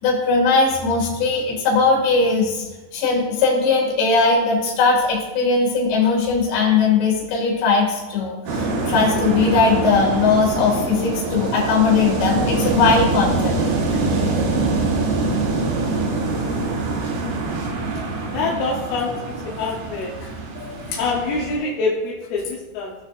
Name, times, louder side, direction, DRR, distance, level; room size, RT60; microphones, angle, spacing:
voice 1, 0.0-2.7 2.9-13.5 20.6-21.0, left 4 dB, 65° left, -2 dB, 4.1 m, -19 dB
sound 1, 8.5-21.6, right 3 dB, 75° right, 4.0 m, -24 dB
voice 2, 18.3-20.2 21.0-23.0, left 3 dB, 85° left, -3 dB, 3.6 m, -25 dB
18.0 x 6.5 x 2.5 m, 1.2 s
omnidirectional pair, 5.8 m